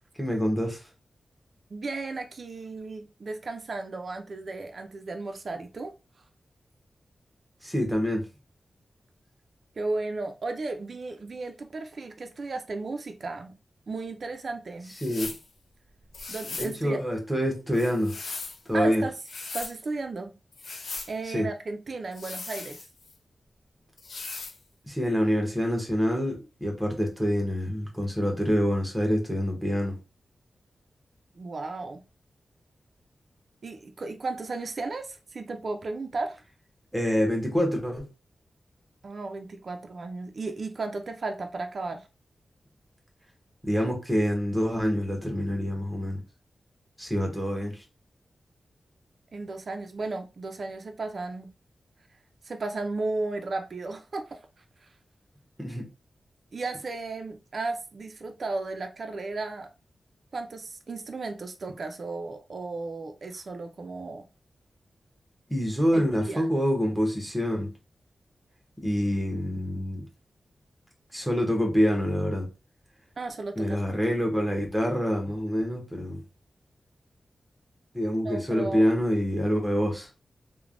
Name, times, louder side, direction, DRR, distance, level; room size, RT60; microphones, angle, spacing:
voice 1, 0.2-0.9 7.6-8.3 15.0-15.3 16.6-18.2 18.7-19.0 21.2-21.5 24.8-30.0 36.9-38.1 43.6-46.2 47.0-47.8 55.6-55.9 65.5-67.7 68.8-70.0 71.1-72.5 73.6-76.2 77.9-80.1, equal, 5° right, 0.9 m, -26 dB
voice 2, 1.7-5.9 9.8-13.5 13.9-14.9 16.3-17.0 18.7-19.1 19.5-20.3 21.1-22.8 31.4-32.0 33.6-36.4 39.0-42.1 49.3-51.5 52.4-54.4 54.8-54.9 56.5-59.7 60.3-64.2 65.9-66.5 73.2-73.8 78.2-78.9, right 3 dB, 55° right, 0.3 m, -34 dB
sound 1, 14.9-15.5 16.1-16.8 17.7-18.6 19.1-19.8 20.5-21.1 22.1-23.1 24.0-24.6, left 4 dB, 75° left, 0.5 m, -38 dB
3.1 x 2.1 x 2.4 m
wide cardioid pair, 115°, 0 cm